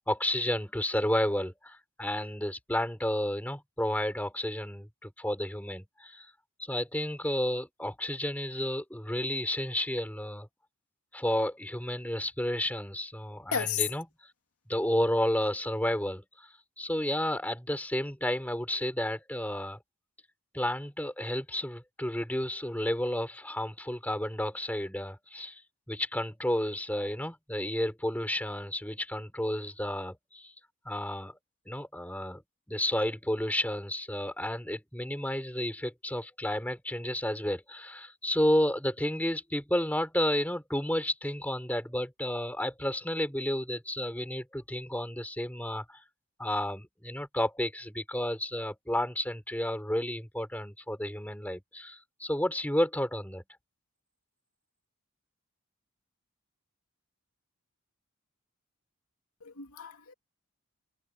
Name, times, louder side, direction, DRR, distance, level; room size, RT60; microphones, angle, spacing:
voice 1, 0.1-6.3 6.6-10.5 11.1-14.1 14.7-19.8 20.5-25.6 25.9-30.5 30.8-31.4 31.7-32.4 32.7-46.0 46.4-53.4, left 1 dB, 5° left, 4.2 m, -31 dB
voice 2, 13.5-13.8 59.4-60.1, left 8 dB, 85° left, 2.6 m, -32 dB
head